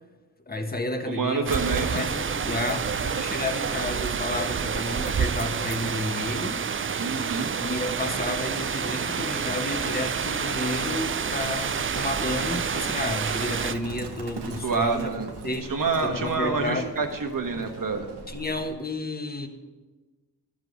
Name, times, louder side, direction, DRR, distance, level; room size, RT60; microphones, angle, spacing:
voice 1, 0.5-1.5 1.9-6.6 7.6-15.1 15.4-15.7 16.0-16.9 18.3-19.5, left 2 dB, 25° left, 6 dB, 1.5 m, -31 dB
voice 2, 1.1-2.0 7.0-7.5 14.6-15.3 15.7-18.1, right 4 dB, 55° right, 5 dB, 1.5 m, -27 dB
sound 1, 1.5-13.8, right 6 dB, 35° right, 0.5 m, -28 dB
Livestock farm animals working animals, 11.3-18.7, right 4 dB, 90° right, 1.2 m, -41 dB
12.0 x 7.5 x 5.3 m, 1.3 s
cardioid pair, 45°, 39 cm